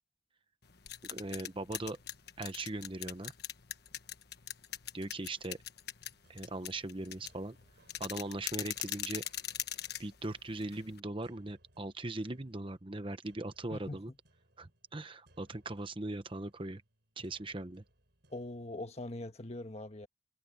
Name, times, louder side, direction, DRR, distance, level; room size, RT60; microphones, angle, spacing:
sound 1, 0.6-11.0, left 12 dB, 55° left, 1.4 m, -42 dB
voice 1, 1.0-2.0 2.4-3.3 4.9-5.6 6.3-7.6 8.0-9.2 10.0-14.1 14.6-16.8 17.2-17.8, right 2 dB, 25° right, 0.9 m, -40 dB
sound 2, 6.0-18.9, right 1 dB, 55° right, 7.4 m, -68 dB
voice 2, 13.7-14.0 18.3-20.1, left 2 dB, 35° left, 1.5 m, -42 dB
head